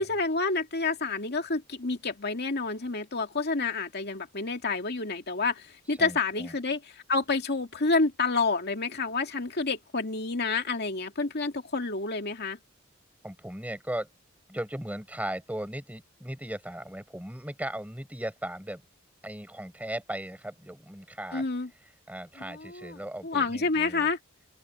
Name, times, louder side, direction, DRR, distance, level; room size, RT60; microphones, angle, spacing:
voice 1, 0.0-12.6 21.3-21.7 22.4-24.2, left 3 dB, 50° left, 2.4 m, -29 dB
voice 2, 6.0-6.5 13.2-14.1 14.5-18.8 19.2-21.4 22.1-24.1, right 1 dB, 5° right, 4.7 m, -37 dB
open air
head